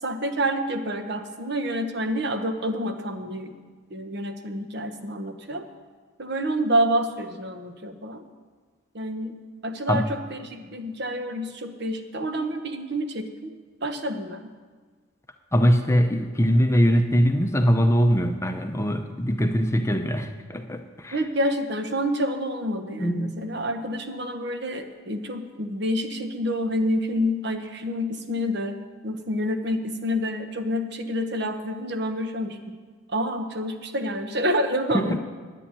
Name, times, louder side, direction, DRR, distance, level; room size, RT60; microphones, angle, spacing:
voice 1, 0.0-3.5 3.9-5.6 6.2-8.2 8.9-13.5 13.8-14.5 21.1-28.8 29.0-32.6 33.1-35.2, equal, 55° right, 6 dB, 1.2 m, -28 dB
voice 2, 15.5-21.2 23.0-23.5 34.9-35.2, equal, 15° left, 6 dB, 0.6 m, -22 dB
10.0 x 8.7 x 9.8 m, 1.5 s
head